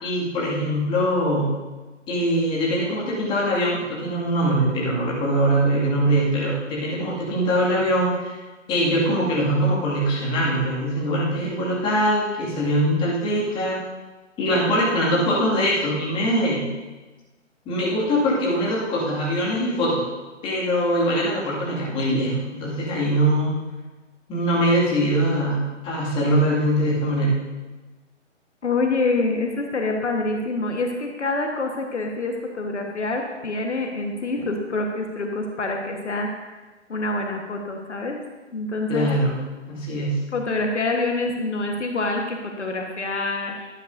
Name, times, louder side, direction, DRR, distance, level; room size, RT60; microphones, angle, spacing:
voice 1, 0.0-1.5 2.1-8.4 8.7-13.8 14.4-16.7 17.7-20.0 20.4-23.6 24.3-27.3 38.9-39.3 39.7-40.2, equal, 15° left, -6 dB, 2.2 m, -22 dB
voice 2, 28.6-36.6 36.9-38.2 38.5-39.1 40.3-43.7, left 2 dB, 65° left, 2 dB, 1.4 m, -26 dB
11.5 x 11.0 x 2.7 m, 1.2 s
figure-of-eight pair, 140°, 37 cm